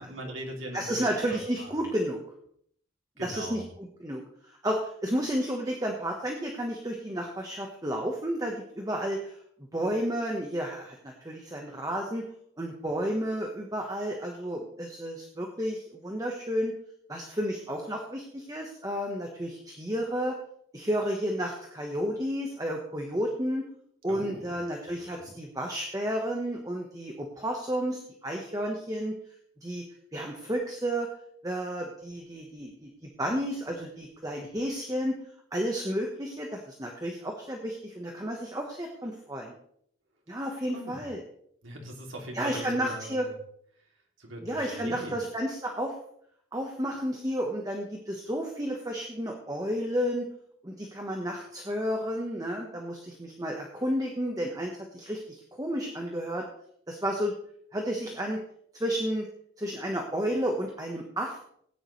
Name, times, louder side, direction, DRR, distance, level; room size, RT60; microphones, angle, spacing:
voice 1, 0.0-1.8 3.2-3.7 24.1-24.5 25.2-25.3 40.7-41.1 41.6-43.3 44.2-45.2, right 1 dB, 90° right, 1 dB, 2.9 m, -41 dB
voice 2, 0.7-2.2 3.2-3.6 4.0-4.2 4.6-9.4 9.7-12.2 12.6-16.7 17.1-20.3 20.7-23.7 24.0-29.1 29.6-29.8 30.1-31.1 31.4-35.2 35.5-39.5 40.3-41.2 42.3-43.3 44.4-45.9 46.5-50.2 50.6-56.4 56.9-57.3 57.7-58.4 58.7-59.3 59.6-61.4, equal, 20° right, 1 dB, 1.3 m, -31 dB
16.5 x 10.0 x 3.3 m, 0.67 s
head